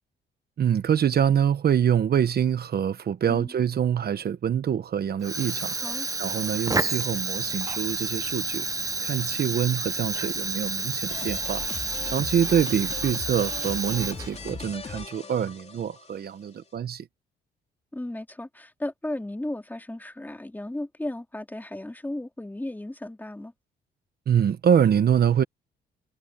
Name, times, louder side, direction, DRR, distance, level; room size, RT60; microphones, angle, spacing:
voice 1, 0.6-5.8 6.2-8.7 9.0-11.6 12.0-17.1 24.3-25.4, right 8 dB, 50° right, 1.1 m, -25 dB
Fire, 5.2-14.5, right 3 dB, 15° right, 1.0 m, -30 dB
voice 2, 5.6-6.1 17.9-23.5, left 1 dB, 10° left, 2.7 m, -35 dB
sound 1, 11.1-16.2, left 4 dB, 30° left, 3.1 m, -39 dB
cardioid pair, 90°, 20 cm